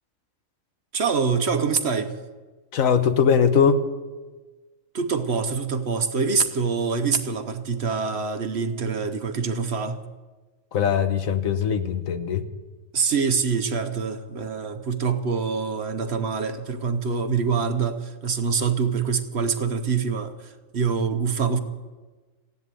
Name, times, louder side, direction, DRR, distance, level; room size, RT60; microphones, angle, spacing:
voice 1, 0.9-2.1 4.9-10.1 12.9-21.6, right 5 dB, 55° right, 1.1 m, -25 dB
voice 2, 2.7-3.9 10.7-12.5, left 6 dB, 75° left, 1.3 m, -21 dB
15.5 x 11.0 x 8.2 m
omnidirectional pair, 1.5 m